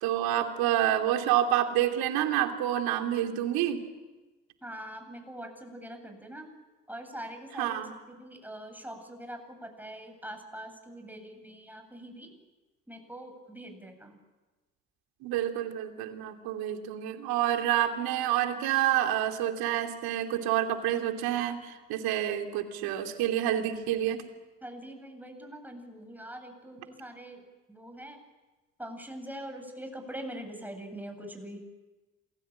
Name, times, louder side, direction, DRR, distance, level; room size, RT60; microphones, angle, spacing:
voice 1, 0.0-3.8 7.6-7.9 15.2-24.2, right 12 dB, 70° right, 5 dB, 3.0 m, -28 dB
voice 2, 4.6-6.5 6.9-12.3 12.9-14.2 24.6-27.4 27.7-28.2 28.8-31.6, right 1 dB, 5° right, 5 dB, 7.8 m, -43 dB
27.5 x 22.0 x 8.9 m, 1.2 s
hypercardioid pair, 55°, 38 cm